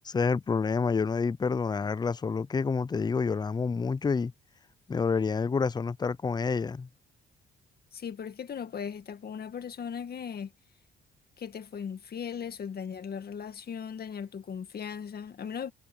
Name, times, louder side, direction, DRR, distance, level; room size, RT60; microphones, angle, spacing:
voice 1, 0.0-4.3 4.9-6.9, left 5 dB, 20° left, 0.5 m, -28 dB
voice 2, 7.9-10.5 11.4-15.7, left 7 dB, 50° left, 2.0 m, -38 dB
cardioid pair, 90°, 20 cm